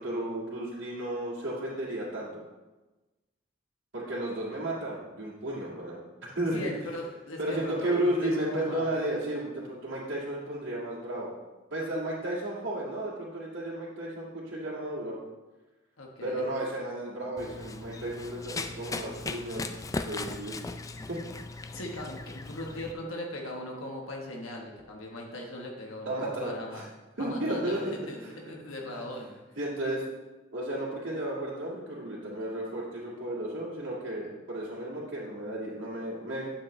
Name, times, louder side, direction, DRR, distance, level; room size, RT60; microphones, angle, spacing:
voice 1, 0.0-2.4 3.9-6.7 7.4-11.3 11.7-15.2 16.2-19.7 20.1-20.6 21.1-21.2 26.1-26.9 27.2-28.3 29.6-30.0 30.5-36.5, right 1 dB, 65° right, -8 dB, 2.0 m, -33 dB
voice 2, 6.5-8.9 16.0-16.5 21.7-26.8 27.2-29.3, left 1 dB, 90° left, 0 dB, 1.2 m, -39 dB
Run, 17.4-22.9, left 3 dB, 15° left, 0.3 m, -38 dB
9.6 x 7.2 x 3.2 m, 1.1 s
head